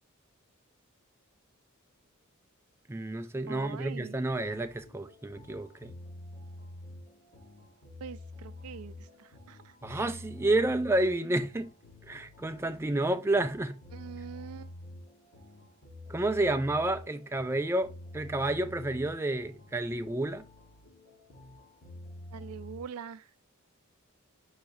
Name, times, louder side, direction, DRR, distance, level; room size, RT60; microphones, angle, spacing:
voice 1, 2.9-5.9 9.8-11.7 12.1-13.8 16.1-20.4, right 2 dB, 10° right, 0.3 m, -30 dB
voice 2, 3.5-4.2 8.0-10.1 13.9-14.7 22.3-23.3, right 7 dB, 85° right, 0.4 m, -44 dB
sound 1, 4.4-22.8, left 1 dB, 90° left, 1.5 m, -48 dB
5.7 x 3.2 x 2.6 m
head